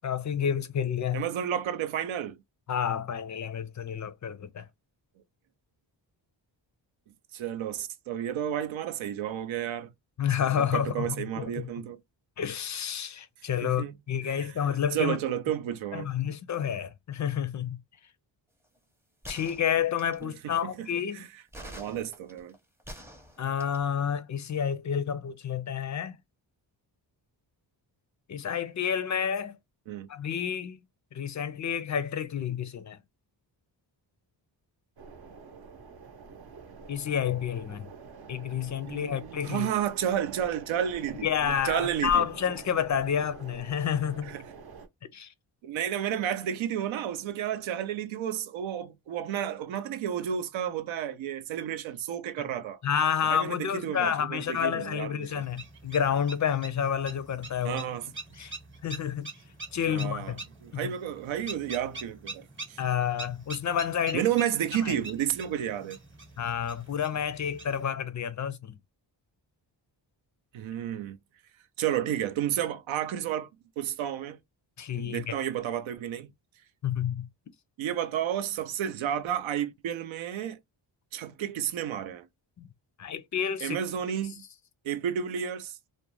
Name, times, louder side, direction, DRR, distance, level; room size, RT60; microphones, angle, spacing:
voice 1, 0.0-1.2 2.7-4.6 10.2-11.7 12.4-15.2 15.9-17.8 19.3-21.2 23.4-26.2 28.3-29.6 30.1-30.8 31.1-33.0 36.9-37.9 38.3-39.7 41.2-44.3 45.1-45.3 52.8-57.8 58.4-58.5 58.8-59.3 59.7-60.4 60.8-60.9 62.8-64.3 64.8-65.0 66.4-68.8 74.8-75.3 76.8-77.3 83.0-83.8, left 8 dB, 40° left, 0.4 m, -29 dB
voice 2, 1.1-2.4 7.3-9.9 10.6-12.0 13.6-14.0 14.2-16.1 20.2-20.9 21.1-21.3 21.6-22.6 29.9-30.1 38.9-42.3 44.2-44.5 45.6-52.8 53.2-55.4 57.6-58.1 59.9-62.8 64.1-66.0 70.5-71.2 71.8-73.5 73.8-74.4 75.0-76.3 77.8-80.6 81.1-82.3 83.6-84.4 84.8-85.8, right 10 dB, 90° right, 0.6 m, -31 dB
sound 1, 19.2-20.3 21.5-23.9, equal, 5° right, 0.6 m, -46 dB
sound 2, 35.0-44.9, right 4 dB, 55° right, 0.7 m, -46 dB
sound 3, 55.2-67.9, right 3 dB, 25° right, 0.8 m, -44 dB
2.4 x 2.1 x 3.0 m
cardioid pair, 80°, 46 cm